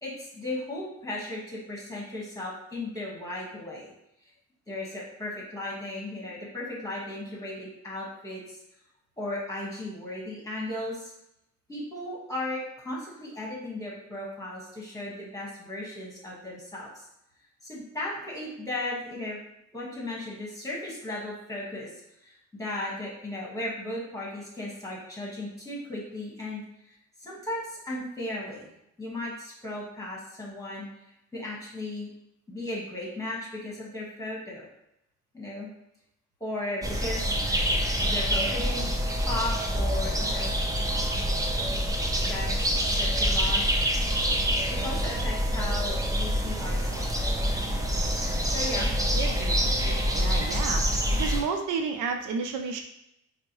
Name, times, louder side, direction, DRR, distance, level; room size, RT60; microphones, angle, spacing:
voice 1, 0.0-3.9 4.7-8.4 9.2-11.1 11.7-17.0 17.6-19.4 19.7-21.9 22.2-26.6 27.2-28.7 29.0-30.9 31.3-32.1 32.5-34.7 35.3-35.7 36.4-37.4 38.0-38.8 39.2-40.5 42.3-43.8 44.7-47.3 48.4-48.9, left 1 dB, 10° left, -4 dB, 1.4 m, -36 dB
sound 1, 36.8-51.4, equal, 10° right, 0.5 m, -26 dB
voice 2, 49.1-50.8 51.1-52.8, right 5 dB, 80° right, 5 dB, 0.5 m, -32 dB
4.4 x 2.1 x 3.0 m, 0.82 s
cardioid pair, 90°, 30 cm